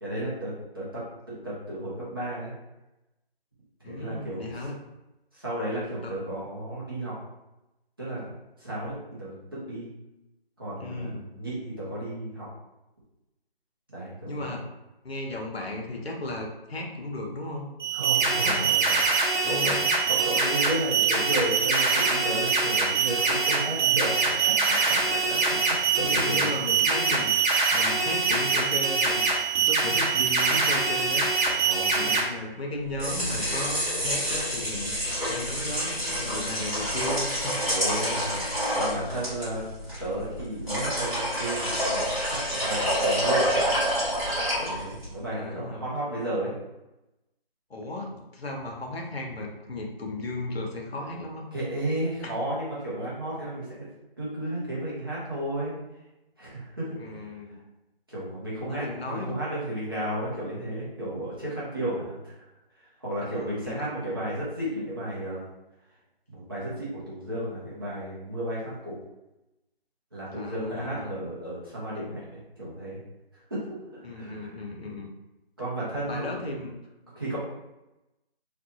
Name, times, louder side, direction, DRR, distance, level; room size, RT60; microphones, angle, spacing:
voice 1, 0.0-2.5 3.8-4.7 5.3-7.1 8.0-8.3 8.6-9.9 10.6-12.5 13.9-14.5 17.9-19.8 20.1-26.5 31.6-32.2 37.6-39.6 40.0-43.6 44.6-46.5 51.5-53.7 54.2-55.7 56.4-57.0 57.5-57.6 58.1-62.4 62.7-65.5 66.3-69.0 70.1-73.0 73.5-73.7 73.9-74.6 75.6-76.6 77.1-77.4, right 1 dB, 25° right, -9 dB, 0.7 m, -33 dB
voice 2, 3.8-4.8 6.0-6.3 10.8-11.2 14.3-14.6 15.0-17.6 18.2-18.7 19.4-19.8 25.9-27.3 27.7-29.3 29.6-31.3 31.9-35.0 35.3-37.5 45.3-45.8 47.7-51.5 52.2-52.3 57.0-57.6 58.7-59.4 63.2-64.2 70.3-71.2 74.0-75.1 76.0-76.7 77.3-77.4, left 2 dB, 75° left, 0 dB, 0.9 m, -35 dB
sound 1, 17.8-32.2, right 4 dB, 50° right, 0.9 m, -24 dB
sound 2, 32.8-45.1, equal, 5° left, 1.4 m, -28 dB
3.2 x 2.6 x 2.7 m, 0.95 s
figure-of-eight pair, 165°, 30 cm